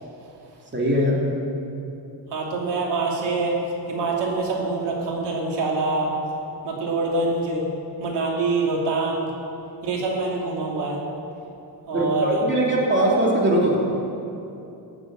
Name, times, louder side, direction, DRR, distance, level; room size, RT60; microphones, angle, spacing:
voice 1, 0.7-1.2 11.9-13.8, right 1 dB, 25° right, -3 dB, 3.0 m, -20 dB
voice 2, 2.3-3.6 3.9-6.1 6.6-7.6 8.0-9.3 9.8-11.0 11.9-12.4, right 3 dB, 75° right, -2 dB, 3.0 m, -25 dB
16.0 x 8.0 x 8.9 m, 2.8 s
cardioid pair, 125°, 42 cm